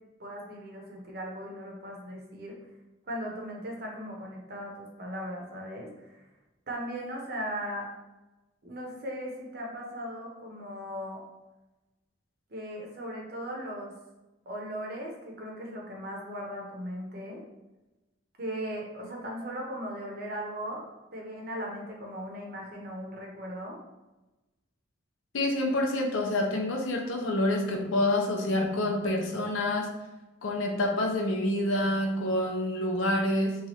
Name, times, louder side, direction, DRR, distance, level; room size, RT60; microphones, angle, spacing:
voice 1, 0.2-2.6 3.1-6.2 6.7-7.9 8.6-11.2 12.5-13.9 14.5-17.4 18.4-20.9 21.1-23.8, equal, 50° right, -1 dB, 0.7 m, -38 dB
voice 2, 25.3-29.9 30.4-33.6, left 1 dB, 85° left, 1 dB, 0.6 m, -27 dB
2.9 x 2.4 x 2.8 m, 1.1 s
head